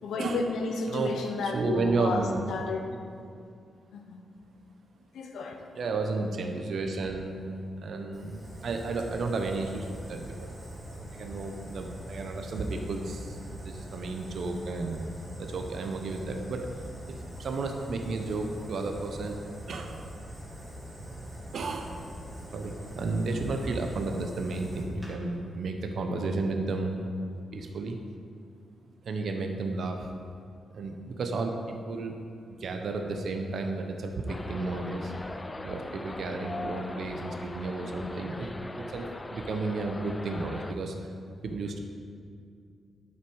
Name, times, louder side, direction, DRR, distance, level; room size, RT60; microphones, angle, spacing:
voice 1, 0.0-2.9 3.9-4.2 5.1-5.6 36.8-36.9, left 3 dB, 80° left, 3 dB, 1.0 m, -32 dB
voice 2, 1.4-2.5 5.7-7.4 7.8-10.5 11.1-15.1 15.4-19.4 19.7-20.0 21.5-22.0 22.5-26.9 27.5-28.0 29.0-30.1 30.7-32.2 32.6-35.1 35.6-38.5 38.9-41.1 41.4-41.8, right 3 dB, 55° right, 4 dB, 0.7 m, -32 dB
Fire, 8.1-25.1, equal, 10° right, 1.9 m, -43 dB
sound 1, 34.3-40.7, left 2 dB, 15° left, 0.4 m, -40 dB
10.5 x 6.1 x 4.7 m, 2.3 s
wide cardioid pair, 150°, 0 cm